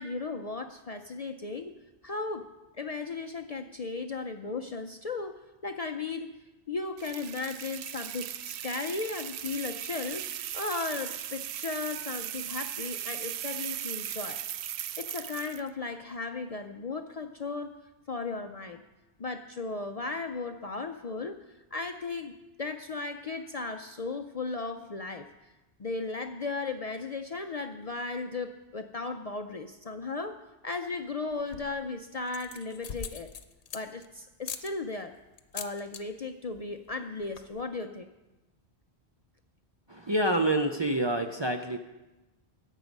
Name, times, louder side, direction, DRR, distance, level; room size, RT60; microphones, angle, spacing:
voice 1, 0.0-1.8 2.0-2.5 2.8-6.3 6.7-10.3 10.5-14.4 15.0-17.7 18.1-18.8 19.2-21.4 21.7-22.3 22.6-25.3 25.8-33.3 33.7-35.1 35.5-38.1, left 3 dB, 45° left, 6 dB, 0.5 m, -36 dB
sound 1, 7.0-15.7, right 11 dB, 75° right, 0.8 m, -38 dB
sound 2, 31.3-31.8 32.3-34.1 34.4-34.7 35.4-36.0 36.3-36.6 36.9-37.0 37.2-37.6, left 7 dB, 90° left, 1.0 m, -41 dB
voice 2, 39.9-41.8, right 1 dB, 30° right, 3 dB, 0.5 m, -27 dB
14.0 x 8.3 x 5.3 m, 1.1 s
omnidirectional pair, 1.1 m